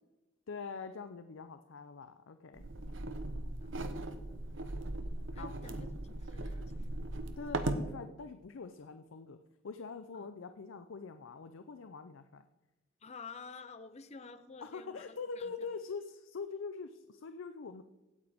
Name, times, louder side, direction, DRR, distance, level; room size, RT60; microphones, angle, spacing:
voice 1, 0.5-2.7 5.3-5.5 7.4-9.4 9.6-12.5 14.6-17.8, left 4 dB, 85° left, 9 dB, 0.5 m, -44 dB
sound 1, 2.6-7.9, right 2 dB, 75° right, 0.9 m, -38 dB
voice 2, 5.3-7.0 10.2-10.3 13.0-15.5, left 4 dB, 35° left, 12 dB, 0.6 m, -50 dB
16.0 x 8.8 x 3.5 m, 1.1 s
head